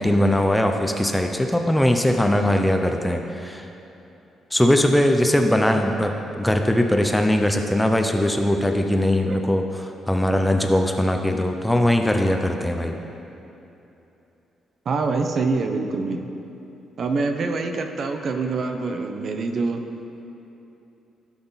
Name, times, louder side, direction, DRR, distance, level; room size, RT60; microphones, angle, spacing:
voice 1, 0.0-3.7 4.5-13.0, left 1 dB, 5° left, 4 dB, 0.5 m, -20 dB
voice 2, 14.9-16.2 17.0-19.8, right 3 dB, 45° right, 5 dB, 0.7 m, -25 dB
16.0 x 5.9 x 4.0 m, 2.9 s
cardioid pair, 140°, 0 cm